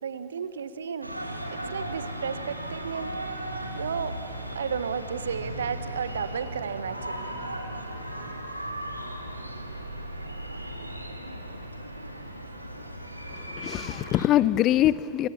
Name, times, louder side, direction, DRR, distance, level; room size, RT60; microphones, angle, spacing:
voice 1, 0.0-1.1 1.5-3.4 3.8-4.1 4.5-7.3, right 7 dB, 70° right, 1.3 m, -33 dB
sound 1, 1.0-14.3, right 1 dB, 85° right, 2.0 m, -36 dB
voice 2, 13.3-15.3, left 13 dB, 35° left, 0.7 m, -24 dB
25.5 x 24.5 x 7.3 m
figure-of-eight pair, 90°, 0 cm